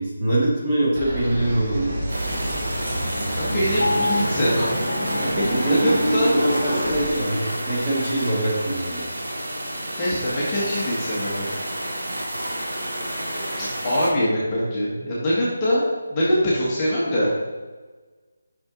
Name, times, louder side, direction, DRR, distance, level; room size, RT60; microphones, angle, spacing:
voice 1, 0.0-2.0 5.2-9.0, right 1 dB, 15° right, -8 dB, 1.7 m, -23 dB
sound 1, 0.9-7.1, right 1 dB, 30° right, 1.7 m, -27 dB
sound 2, 2.1-14.1, right 1 dB, 75° right, 2.0 m, -30 dB
voice 2, 3.4-4.7 5.6-6.4 10.0-11.5 13.6-15.8 16.1-17.3, equal, 15° left, -9 dB, 1.3 m, -23 dB
Piano, 3.8-7.9 8.4-8.5, left 2 dB, 60° left, 0.6 m, -31 dB
6.0 x 5.8 x 3.8 m, 1.3 s
figure-of-eight pair, 170°, 0 cm